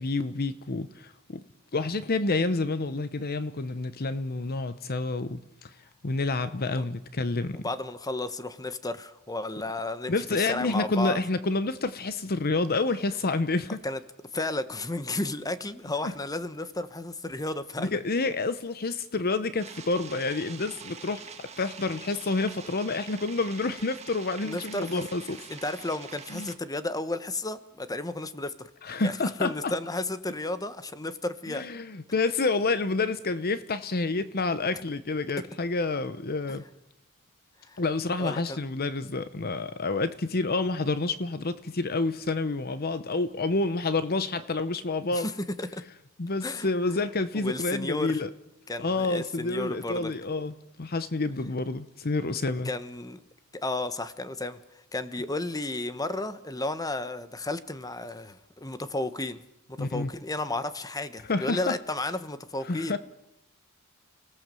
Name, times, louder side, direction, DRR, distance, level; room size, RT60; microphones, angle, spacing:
voice 1, 0.0-1.4 1.7-5.7 6.0-7.6 10.1-13.8 16.0-16.1 17.8-25.4 26.3-26.5 28.8-29.7 31.5-36.6 37.8-45.3 46.2-48.3 48.8-50.5 50.8-52.7 59.8-60.1 61.3-61.8 62.6-63.0, left 3 dB, 45° left, 0.9 m, -28 dB
voice 2, 7.5-11.2 13.8-14.0 14.3-18.0 24.4-25.0 25.5-28.7 29.0-31.7 37.7-37.8 38.2-38.6 45.1-45.3 45.6-45.8 46.4-46.7 47.3-48.2 48.7-50.1 52.6-53.2 53.6-54.6 54.9-59.4 59.8-63.0, left 2 dB, 15° left, 1.2 m, -33 dB
sound 1, 19.6-26.5, right 6 dB, 30° right, 1.8 m, -45 dB
29.5 x 18.0 x 7.7 m
head